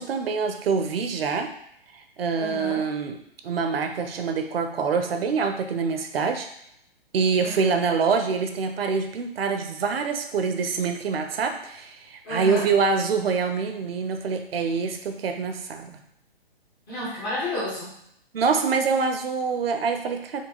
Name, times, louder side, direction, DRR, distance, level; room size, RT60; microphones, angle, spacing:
voice 1, 0.0-1.5 1.9-3.2 3.4-6.5 7.1-16.0 18.3-20.4, right 5 dB, 70° right, 6 dB, 0.6 m, -25 dB
voice 2, 2.4-2.8 7.4-7.8 12.2-12.7 16.9-18.0, left 1 dB, 10° left, -8 dB, 0.3 m, -31 dB
4.5 x 2.3 x 2.9 m, 0.74 s
hypercardioid pair, 140°, 31 cm